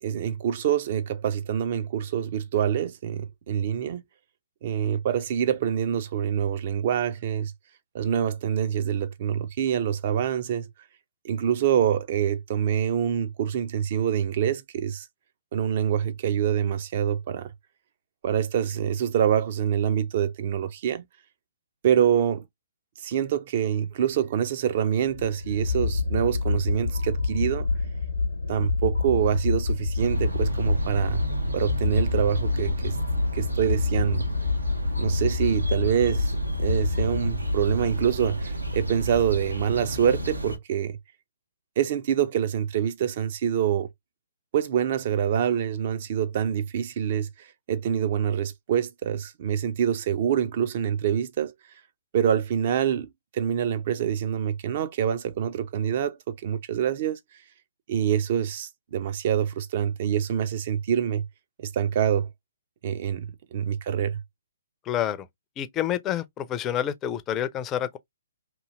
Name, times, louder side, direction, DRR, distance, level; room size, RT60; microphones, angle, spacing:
voice 1, 0.0-4.0 4.6-7.5 7.9-10.7 11.2-15.1 15.5-17.5 18.2-21.0 21.8-22.4 23.0-27.7 28.5-31.2 31.5-33.0 33.3-34.3 35.0-36.3 36.6-41.0 41.8-43.9 44.5-51.5 52.1-57.2 57.9-61.3 61.6-62.3 62.8-64.2, right 9 dB, 45° right, 0.5 m, -26 dB
sound 1, 25.1-39.2, left 4 dB, 75° left, 0.8 m, -28 dB
sound 2, 30.0-40.6, right 1 dB, 90° right, 0.7 m, -31 dB
voice 2, 64.9-65.3 65.6-68.0, left 10 dB, 20° left, 0.4 m, -28 dB
2.8 x 2.7 x 2.5 m
figure-of-eight pair, 130°, 0 cm